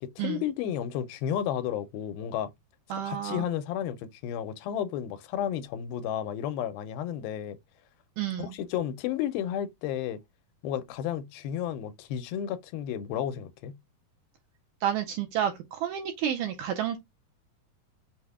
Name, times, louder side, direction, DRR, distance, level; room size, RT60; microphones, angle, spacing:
voice 1, 0.0-2.5 2.9-7.6 8.4-10.2 10.6-13.8, left 10 dB, 85° left, 2.4 m, -32 dB
voice 2, 2.9-3.5 8.2-8.5 14.8-17.0, right 10 dB, 80° right, 1.9 m, -30 dB
5.9 x 2.1 x 3.5 m
omnidirectional pair, 4.2 m